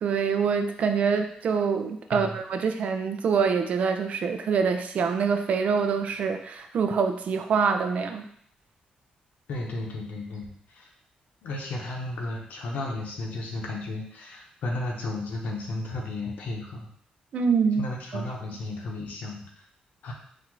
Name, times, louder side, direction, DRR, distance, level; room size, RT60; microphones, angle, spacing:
voice 1, 0.0-8.3 17.3-17.9 18.1-18.2, right 6 dB, 60° right, 6 dB, 0.5 m, -25 dB
voice 2, 9.5-10.9 11.4-16.9 17.8-19.5 20.0-20.1, left 2 dB, 80° left, -1 dB, 1.0 m, -34 dB
4.3 x 2.6 x 4.6 m, 0.64 s
cardioid pair, 125°, 3 cm